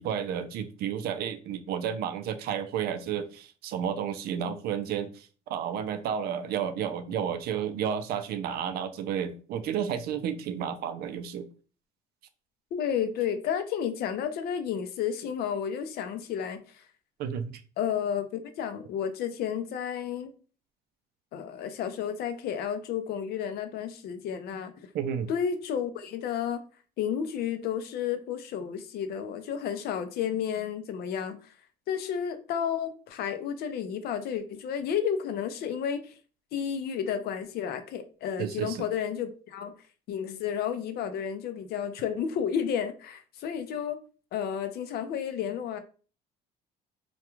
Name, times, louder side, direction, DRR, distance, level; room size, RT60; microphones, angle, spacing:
voice 1, 0.0-11.4 17.2-17.5 24.9-25.3 38.4-38.9, right 8 dB, 65° right, 0.4 m, -32 dB
voice 2, 12.7-16.8 17.8-20.3 21.3-24.7 25.3-26.6 27.0-31.5 31.9-36.1 36.5-39.7 40.1-44.0 44.3-45.8, left 8 dB, 65° left, 0.4 m, -31 dB
2.3 x 2.2 x 2.9 m
cardioid pair, 110°, 17 cm